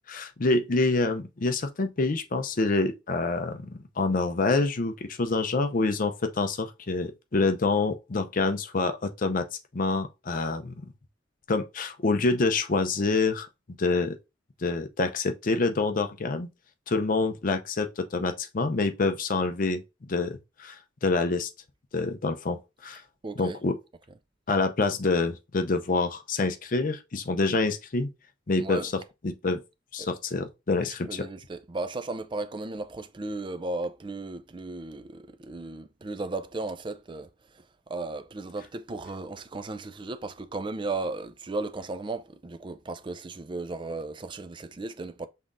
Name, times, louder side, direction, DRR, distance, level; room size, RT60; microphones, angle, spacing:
voice 1, 0.1-9.5 9.7-10.9 11.5-13.5 13.8-14.2 14.6-16.5 16.9-19.8 20.1-21.5 21.9-23.0 23.4-23.8 24.5-28.1 28.5-29.6 29.9-31.2, left 3 dB, 45° left, 0.5 m, -27 dB
voice 2, 23.2-23.6 28.6-28.9 30.0-30.1 31.1-45.3, right 3 dB, 25° right, 0.4 m, -35 dB
5.7 x 3.6 x 2.5 m
head